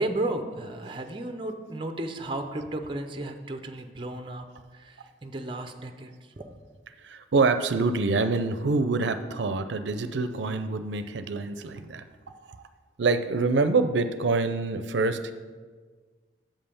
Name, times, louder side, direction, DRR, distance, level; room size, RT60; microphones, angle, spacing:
voice 1, 0.0-4.5 4.7-6.5, right 2 dB, 25° right, 6 dB, 0.5 m, -33 dB
voice 2, 7.0-12.6 13.0-15.3, right 3 dB, 75° right, 10 dB, 0.5 m, -26 dB
7.4 x 5.5 x 6.8 m, 1.5 s
head